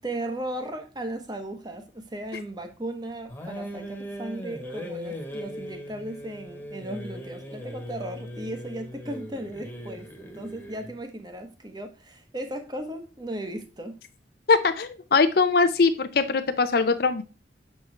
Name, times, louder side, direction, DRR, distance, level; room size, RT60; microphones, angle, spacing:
voice 1, 0.0-14.0, right 1 dB, 20° right, 0.9 m, -36 dB
sound 1, 3.3-11.0, equal, 10° left, 1.2 m, -39 dB
voice 2, 14.5-17.2, left 4 dB, 55° left, 0.5 m, -21 dB
6.9 x 4.4 x 3.2 m
head